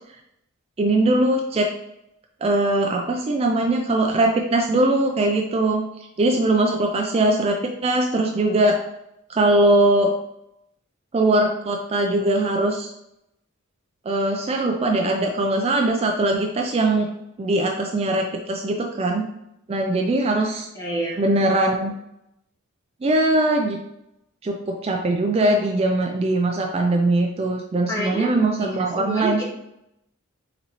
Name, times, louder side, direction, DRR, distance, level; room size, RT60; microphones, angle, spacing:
voice 1, 0.8-1.7 2.4-5.8 6.2-8.8 9.3-10.1 11.1-12.9 14.1-17.1 17.4-19.2 19.7-20.7 21.2-21.9 23.0-23.8 24.4-29.4, right 2 dB, 30° right, 2 dB, 0.3 m, -21 dB
voice 2, 20.7-21.4 27.9-28.3 28.6-29.4, right 1 dB, 15° left, -4 dB, 1.0 m, -29 dB
4.0 x 4.0 x 3.0 m, 0.82 s
head